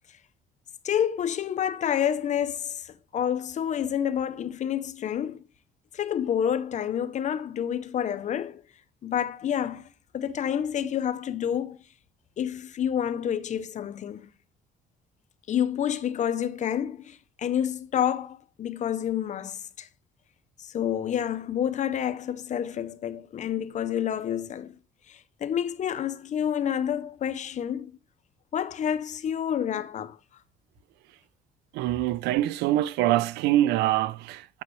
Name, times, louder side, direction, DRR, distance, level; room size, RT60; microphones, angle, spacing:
voice 1, 0.8-5.4 5.9-8.6 9.0-9.9 10.1-11.8 12.4-14.3 15.5-19.9 20.6-24.8 25.1-28.0 28.5-30.2, left 9 dB, 45° left, 0.7 m, -29 dB
voice 2, 31.7-34.6, right 14 dB, 85° right, 0.4 m, -24 dB
8.6 x 5.9 x 3.1 m
cardioid pair, 110°, 17 cm